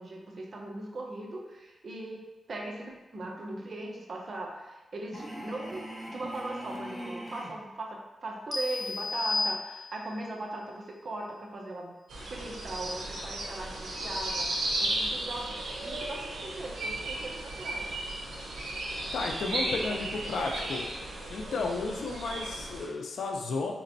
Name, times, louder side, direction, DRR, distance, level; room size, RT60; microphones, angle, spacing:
voice 1, 0.0-12.0 12.3-17.9 19.5-20.7 21.5-21.6, right 2 dB, 55° right, 1 dB, 0.6 m, -39 dB
sound 1, 5.1-7.6, equal, 5° left, 0.8 m, -41 dB
sound 2, 8.5-10.3, left 3 dB, 25° left, 0.4 m, -32 dB
sound 3, 12.1-22.9, right 1 dB, 90° right, 0.8 m, -35 dB
voice 2, 19.1-20.9 21.3-23.7, left 3 dB, 80° left, 2 dB, 0.5 m, -33 dB
4.2 x 3.0 x 2.6 m, 1.1 s
cardioid pair, 80°, 0 cm